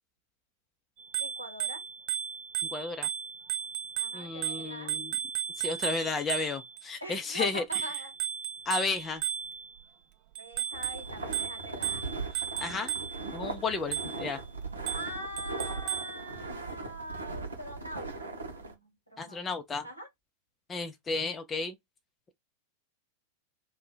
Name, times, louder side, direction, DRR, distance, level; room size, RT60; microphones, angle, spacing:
Bicycle bell, 1.0-6.8 7.7-9.8 10.4-13.3 13.9-14.3 14.9-16.2, right 10 dB, 45° right, 0.5 m, -35 dB
voice 1, 1.2-1.8 4.0-4.9 7.0-8.1 10.4-12.0 14.9-19.4 19.8-20.1, equal, 85° left, 1.3 m, -42 dB
voice 2, 2.7-3.1 4.1-5.2 5.6-7.8 8.7-9.2 12.3-13.0 13.3-14.4 19.2-19.9 20.7-21.8, left 4 dB, 20° left, 0.5 m, -33 dB
sound 1, 10.7-18.7, right 3 dB, 75° right, 0.9 m, -39 dB
2.7 x 2.1 x 3.8 m
figure-of-eight pair, 90°, 0 cm